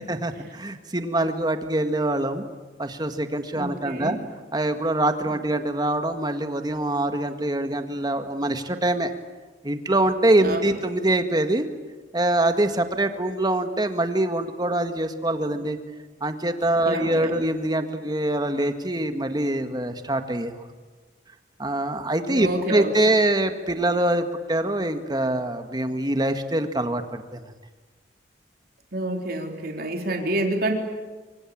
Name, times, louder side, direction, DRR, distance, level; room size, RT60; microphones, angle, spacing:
voice 1, 0.1-2.4 2.8-4.2 4.5-9.1 9.6-11.7 12.1-15.8 16.2-20.6 21.6-27.4, right 1 dB, 25° right, 7 dB, 1.8 m, -24 dB
voice 2, 3.5-4.2 10.4-10.6 16.8-17.4 22.3-22.9 28.9-30.8, right 1 dB, 55° right, 3 dB, 3.7 m, -28 dB
25.0 x 25.0 x 8.7 m, 1.3 s
head